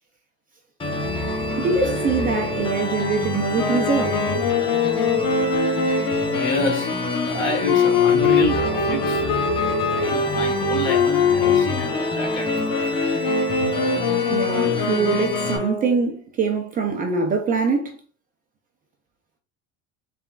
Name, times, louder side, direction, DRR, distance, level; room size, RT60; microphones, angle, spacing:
sound 1, 0.8-15.6, left 2 dB, 15° left, 0.6 m, -27 dB
voice 1, 1.6-4.2 14.3-18.0, right 4 dB, 25° right, 0.5 m, -23 dB
Wind instrument woodwind instrument, 3.5-16.0, left 5 dB, 85° left, 1.2 m, -23 dB
voice 2, 5.7-9.3 9.9-13.2, left 1 dB, 35° left, 1.3 m, -29 dB
4.2 x 3.6 x 2.3 m
cardioid pair, 165°, 34 cm